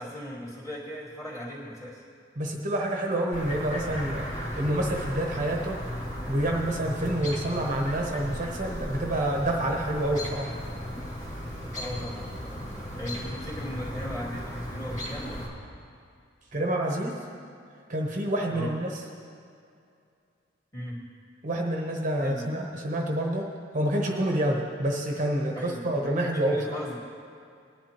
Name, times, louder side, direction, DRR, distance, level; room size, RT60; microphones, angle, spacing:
voice 1, 0.0-2.0 11.8-12.7 13.0-15.3 18.5-18.7 20.7-21.0 22.2-22.5 25.5-27.0, equal, 15° left, -7 dB, 2.5 m, -38 dB
voice 2, 2.4-4.3 4.6-5.8 6.3-10.5 16.5-17.2 17.9-18.9 21.4-26.6, right 1 dB, 40° right, 0 dB, 1.0 m, -28 dB
Chirp tweet, 3.3-15.5, equal, 40° left, 1.9 m, -36 dB
18.5 x 10.5 x 3.0 m, 2.4 s
head